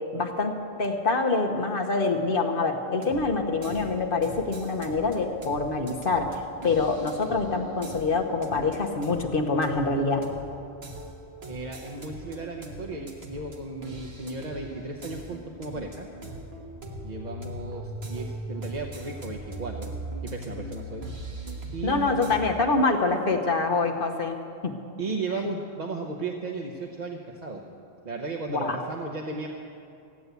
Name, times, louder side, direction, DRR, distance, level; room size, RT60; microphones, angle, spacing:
voice 1, 0.0-10.3 21.8-24.4 24.6-24.8 28.5-28.8, left 3 dB, 60° left, 4 dB, 1.1 m, -26 dB
sound 1, 2.9-22.4, right 1 dB, 75° right, 1.8 m, -40 dB
voice 2, 11.5-16.1 17.0-19.9 20.2-21.0 21.7-22.1 22.8-23.0 25.0-27.6 28.0-29.5, right 3 dB, 45° right, 0 dB, 1.0 m, -35 dB
15.5 x 9.4 x 8.1 m, 2.6 s
omnidirectional pair, 1.1 m